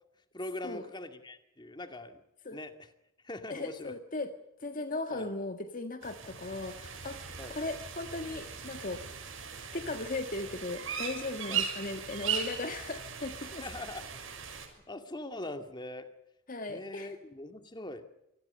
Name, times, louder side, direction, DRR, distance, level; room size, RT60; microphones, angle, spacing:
voice 1, 0.3-2.2 2.5-2.7 3.2-3.9 5.1-5.3 7.4-7.6 11.5-11.7 13.6-14.0 14.5-14.6 14.9-16.1 16.7-18.0, left 2 dB, 25° left, 7 dB, 2.2 m, -42 dB
voice 2, 3.5-4.3 4.6-7.2 7.5-9.0 9.7-13.7 16.5-17.1, left 2 dB, 45° left, 7 dB, 1.7 m, -37 dB
sound 1, 6.0-14.7, right 7 dB, 85° right, 6.3 m, -39 dB
27.5 x 20.0 x 6.7 m, 0.84 s
head